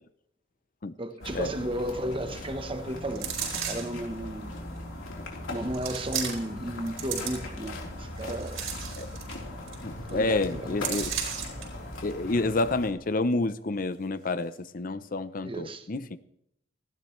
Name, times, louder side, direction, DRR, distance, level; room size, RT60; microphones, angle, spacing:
voice 1, 1.0-4.5 5.5-8.7 10.1-11.0 15.4-15.9, right 1 dB, 25° right, 1.1 m, -34 dB
sound 1, 1.2-12.9, left 1 dB, 90° left, 3.9 m, -39 dB
sound 2, 3.1-4.0 4.8-4.9 5.7-6.6 6.9-7.7 8.2-9.4 9.7-9.8 10.1-10.3 10.8-11.6 12.1-12.2, right 8 dB, 90° right, 4.7 m, -34 dB
voice 2, 9.8-11.2 12.0-16.2, left 2 dB, 45° left, 0.6 m, -29 dB
19.0 x 15.5 x 3.2 m
head